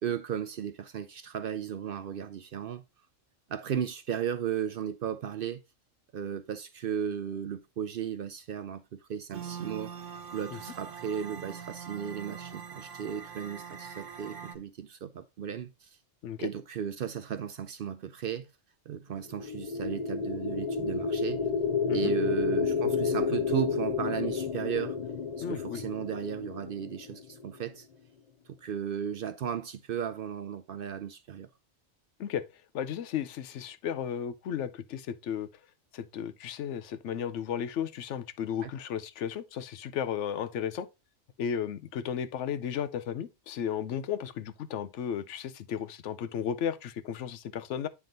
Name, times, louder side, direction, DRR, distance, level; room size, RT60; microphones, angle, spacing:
voice 1, 0.0-2.8 3.5-5.6 6.1-9.9 10.3-16.0 16.4-18.5 18.9-21.4 21.9-25.0 25.4-27.9 28.5-31.5 38.6-38.7, right 8 dB, 60° right, 0.6 m, -35 dB
sound 1, 9.3-14.6, right 7 dB, 85° right, 1.3 m, -43 dB
sound 2, 19.3-27.4, left 5 dB, 55° left, 0.4 m, -31 dB
voice 2, 25.4-25.8 32.2-32.4 32.7-35.5 35.9-40.9 41.4-47.9, left 8 dB, 75° left, 0.9 m, -34 dB
9.1 x 3.6 x 3.8 m
omnidirectional pair, 1.2 m